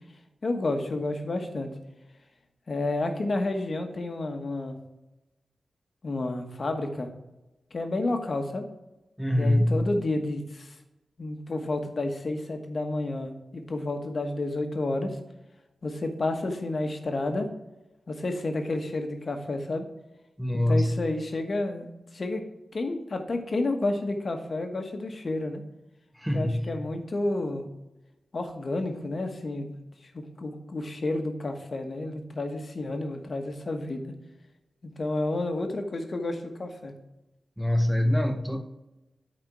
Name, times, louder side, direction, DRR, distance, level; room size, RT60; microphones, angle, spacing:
voice 1, 0.4-1.7 2.7-4.8 6.0-7.1 7.7-8.6 9.3-10.7 11.2-15.2 15.8-17.5 18.1-19.9 20.5-21.9 22.1-22.4 22.7-25.6 26.3-27.7 28.3-29.7 30.1-34.1 34.8-36.9, left 2 dB, 55° left, 1.2 m, -30 dB
voice 2, 9.2-9.9 20.4-21.0 26.2-26.7 37.6-38.6, left 1 dB, ahead, 0.7 m, -24 dB
8.2 x 4.3 x 4.6 m
cardioid pair, 60°, 0 cm